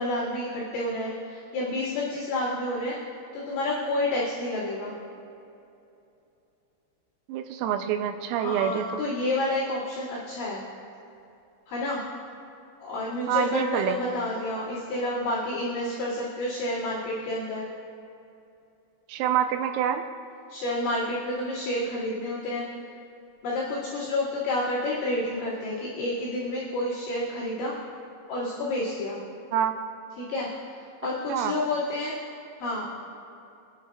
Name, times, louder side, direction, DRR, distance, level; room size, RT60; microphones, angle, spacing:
voice 1, 0.0-2.9 3.3-4.9 8.4-10.6 11.7-12.0 12.8-17.7 20.5-22.7 23.4-27.8 28.3-29.2 30.2-32.2 32.6-32.9, left 1 dB, 65° left, -12 dB, 4.8 m, -29 dB
voice 2, 7.3-9.0 13.3-14.0 19.1-20.1 29.5-29.8 31.3-31.5, right 9 dB, 85° right, 7 dB, 3.3 m, -26 dB
28.0 x 10.0 x 2.4 m, 2.8 s
omnidirectional pair, 6.0 m